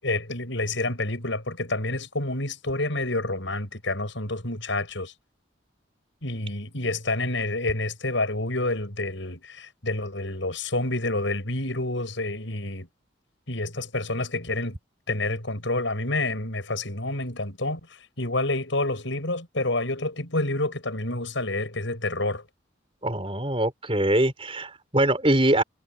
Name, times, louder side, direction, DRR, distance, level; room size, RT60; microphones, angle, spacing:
voice 1, 0.0-5.1 6.2-12.9 13.5-14.8 15.1-17.8 18.2-22.4, left 2 dB, 70° left, 6.7 m, -28 dB
voice 2, 23.0-25.6, right 1 dB, 30° right, 4.7 m, -23 dB
head